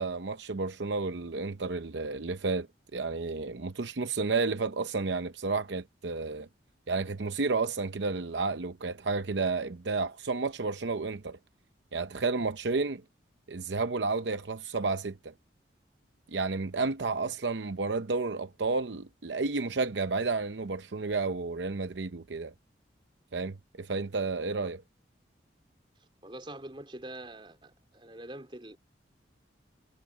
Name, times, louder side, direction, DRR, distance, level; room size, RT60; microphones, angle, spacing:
voice 1, 0.0-2.7 2.9-6.5 6.9-11.4 11.9-13.0 13.5-15.3 16.3-22.5 23.3-24.8, right 4 dB, 75° right, 0.7 m, -31 dB
voice 2, 26.2-28.8, right 1 dB, 25° right, 4.2 m, -44 dB
head